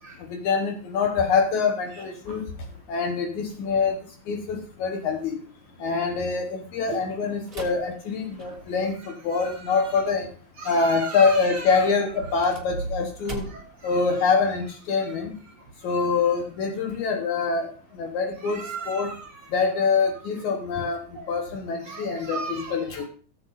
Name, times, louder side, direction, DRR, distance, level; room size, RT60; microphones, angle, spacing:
voice 1, 0.3-2.5 2.9-4.0 4.3-5.4 5.8-8.9 9.2-10.3 10.7-13.4 13.8-15.3 15.8-17.7 18.0-18.6 18.9-19.1 19.5-21.0 21.3-23.1, left 5 dB, 70° left, 4 dB, 2.4 m, -25 dB
sound 1, 7.5-8.9 12.2-13.9, right 2 dB, 20° right, 1.8 m, -40 dB
voice 2, 9.0-10.0 10.6-11.9 13.4-14.2 15.9-16.0 18.4-19.5 21.2-21.3 21.8-22.9, right 4 dB, 55° right, 0 dB, 1.8 m, -37 dB
18.5 x 8.0 x 2.5 m, 0.42 s
omnidirectional pair, 3.6 m